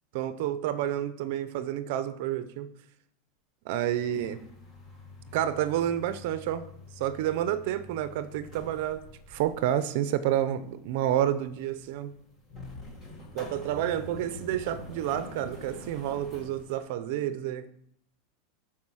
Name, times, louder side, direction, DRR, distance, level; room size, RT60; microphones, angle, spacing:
voice 1, 0.1-2.7 3.7-4.4 5.3-6.7 7.0-9.0 9.3-12.1 13.3-17.7, right 11 dB, 55° right, 0.7 m, -29 dB
sound 1, 3.9-16.8, left 2 dB, 15° left, 1.8 m, -47 dB
13.0 x 4.9 x 6.3 m
supercardioid pair, 170°, 0 cm